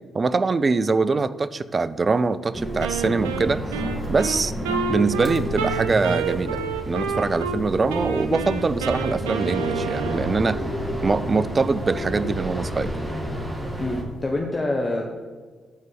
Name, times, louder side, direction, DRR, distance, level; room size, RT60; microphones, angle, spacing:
voice 1, 0.1-3.6 4.1-4.5 4.9-6.6 6.9-10.6 11.0-12.9, right 4 dB, 40° right, 15 dB, 0.4 m, -23 dB
sound 1, 2.5-14.0, right 1 dB, 20° right, 1.9 m, -30 dB
Wind instrument woodwind instrument, 2.8-7.6 7.9-10.5, right 6 dB, 90° right, 0.5 m, -29 dB
sound 2, 3.0-14.4, left 4 dB, 75° left, 0.7 m, -40 dB
voice 2, 13.8-15.2, left 2 dB, 30° left, 0 dB, 1.2 m, -26 dB
8.7 x 4.6 x 6.1 m, 1.5 s
hypercardioid pair, 45°, 0 cm